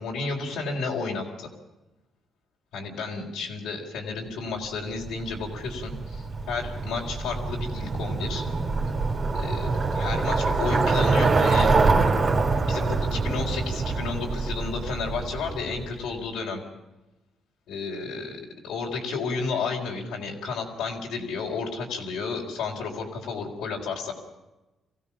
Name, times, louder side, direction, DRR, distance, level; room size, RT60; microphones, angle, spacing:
voice 1, 0.0-1.5 2.7-8.4 9.3-11.7 12.7-16.6 17.7-24.1, left 4 dB, 85° left, -2 dB, 4.2 m, -32 dB
Bicycle, 5.0-15.9, right 3 dB, 45° right, 3.2 m, -25 dB
24.0 x 16.0 x 7.3 m, 1.0 s
cardioid pair, 90°, 0 cm